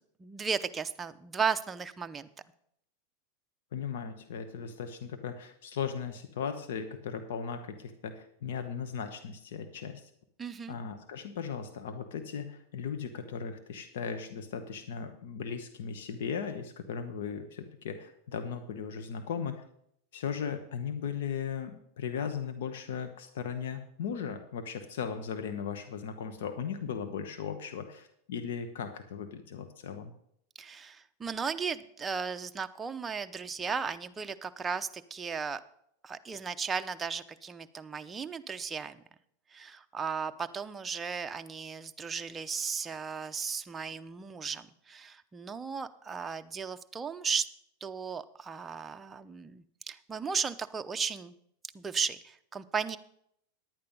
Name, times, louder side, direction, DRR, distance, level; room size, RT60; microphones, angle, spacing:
voice 1, 0.2-2.3 10.4-10.7 30.6-35.6 36.0-39.0 39.5-47.5 47.8-51.3 51.7-53.0, right 6 dB, 15° right, 9 dB, 0.6 m, -35 dB
voice 2, 3.7-10.1 10.7-19.6 20.1-30.1, left 7 dB, 75° left, 8 dB, 1.0 m, -37 dB
10.5 x 8.9 x 5.4 m, 0.71 s
supercardioid pair, 135°, 0 cm